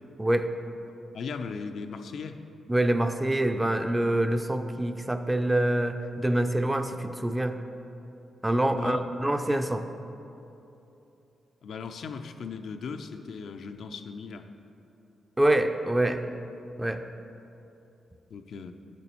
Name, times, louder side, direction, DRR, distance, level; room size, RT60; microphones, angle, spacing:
voice 1, 0.2-0.5 2.7-7.6 8.4-9.9 15.4-16.2 16.8-17.0, right 1 dB, 15° right, 8 dB, 0.4 m, -25 dB
voice 2, 1.1-2.4 8.7-9.0 11.6-14.5 18.3-18.7, left 5 dB, 70° left, 7 dB, 0.3 m, -37 dB
8.1 x 6.8 x 3.0 m, 2.8 s
supercardioid pair, 50°, 0 cm